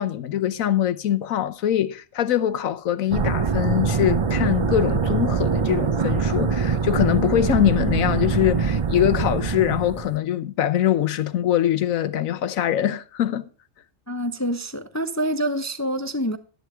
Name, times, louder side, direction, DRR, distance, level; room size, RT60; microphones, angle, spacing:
voice 1, 0.0-13.5, left 11 dB, 85° left, 1.2 m, -23 dB
sound 1, 3.1-10.2, right 5 dB, 50° right, 0.3 m, -23 dB
voice 2, 14.1-16.4, equal, 20° left, 0.6 m, -26 dB
12.5 x 11.0 x 3.4 m
omnidirectional pair, 1.4 m